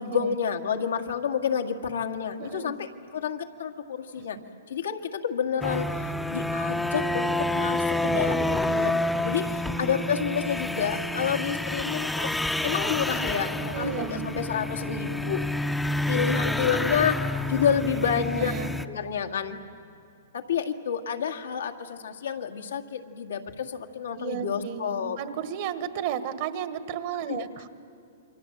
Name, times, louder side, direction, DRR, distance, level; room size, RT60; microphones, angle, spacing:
voice 1, 0.0-4.4 4.7-12.3 12.6-15.4 16.1-18.5 18.9-19.6 20.3-25.2 27.3-27.5, left 7 dB, 85° left, 4 dB, 1.9 m, -29 dB
voice 2, 2.4-2.8 4.1-4.2 9.5-9.9 11.4-11.5 13.7-14.3 18.2-18.7 24.1-27.7, right 9 dB, 50° right, 11 dB, 1.5 m, -34 dB
sound 1, 5.6-18.9, left 1 dB, 5° left, 0.7 m, -28 dB
28.5 x 24.0 x 7.9 m, 2.4 s
hypercardioid pair, 140°, 0 cm